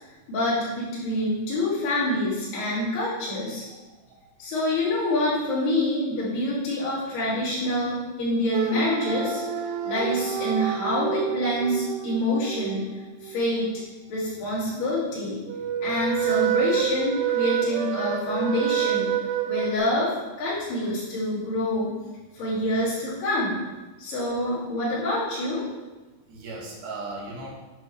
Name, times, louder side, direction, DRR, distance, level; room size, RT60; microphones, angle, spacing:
voice 1, 0.3-3.6 4.4-9.4 9.8-12.9 13.2-13.7 14.1-15.4 15.8-19.1 19.5-20.1 20.4-21.9 22.3-23.6 24.0-25.7, left 1 dB, 80° left, -8 dB, 4.4 m, -26 dB
voice 2, 3.7-4.2 26.3-27.5, right 3 dB, 60° right, -3 dB, 2.8 m, -38 dB
sound 1, 8.5-13.4 15.5-19.8, right 11 dB, 80° right, 2.3 m, -28 dB
9.7 x 5.8 x 3.2 m, 1.2 s
omnidirectional pair, 4.5 m